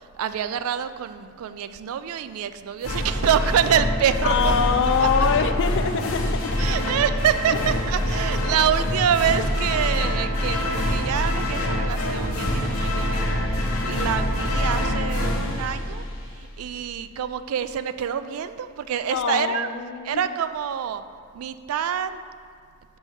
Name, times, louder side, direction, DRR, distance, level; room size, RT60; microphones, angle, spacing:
voice 1, 0.0-4.7 5.0-5.1 6.6-16.0 16.4-19.7 20.0-21.0 21.3-22.2, right 8 dB, 80° right, 12 dB, 0.3 m, -26 dB
sound 1, 2.8-16.5, left 1 dB, 80° left, 1.0 m, -25 dB
voice 2, 4.2-6.6 19.1-20.2, left 6 dB, 60° left, 9 dB, 0.4 m, -24 dB
5.6 x 5.3 x 4.5 m, 2.2 s
head